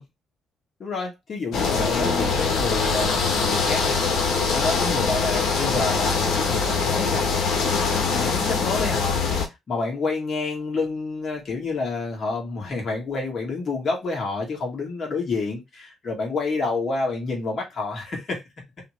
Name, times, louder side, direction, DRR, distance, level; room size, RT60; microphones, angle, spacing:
voice 1, 0.8-7.2 7.9-18.4, left 3 dB, 45° left, 2.4 m, -29 dB
sound 1, 1.5-9.4, left 4 dB, 75° left, 1.3 m, -23 dB
4.1 x 3.0 x 3.2 m
cardioid pair, 90°, 0 cm